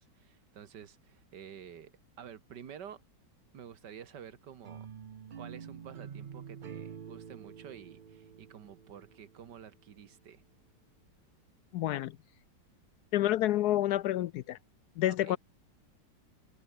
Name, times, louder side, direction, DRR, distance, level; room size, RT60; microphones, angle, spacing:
voice 1, 0.0-3.0 3.5-4.9 5.3-10.4 15.1-15.4, right 8 dB, 75° right, 2.0 m, -50 dB
sound 1, 4.6-9.7, right 7 dB, 60° right, 0.5 m, -47 dB
voice 2, 11.7-12.2 13.1-14.6 15.0-15.4, left 13 dB, 70° left, 1.0 m, -29 dB
omnidirectional pair, 1.9 m